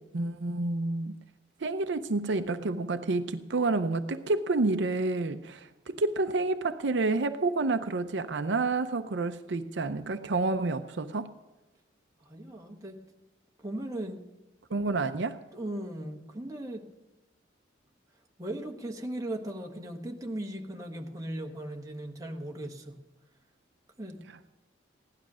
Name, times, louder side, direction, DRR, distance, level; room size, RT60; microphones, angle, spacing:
voice 1, 0.1-1.2 1.6-11.3 14.7-15.4, right 3 dB, 70° right, 0.6 m, -29 dB
voice 2, 12.2-13.0 13.6-14.2 15.5-16.9 18.4-23.0 24.0-24.2, right 1 dB, 20° right, 1.4 m, -37 dB
16.5 x 11.5 x 6.2 m
head